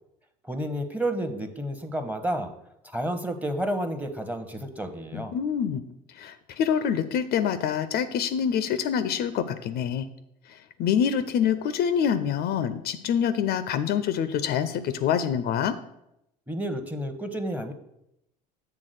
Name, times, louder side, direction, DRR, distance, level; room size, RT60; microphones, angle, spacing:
voice 1, 0.4-2.5 2.8-5.3 16.5-17.7, right 1 dB, 5° right, 8 dB, 0.9 m, -30 dB
voice 2, 5.1-10.1 10.5-15.7, left 8 dB, 50° left, 12 dB, 0.5 m, -26 dB
7.7 x 3.6 x 6.6 m, 0.82 s
hypercardioid pair, 65°, 21 cm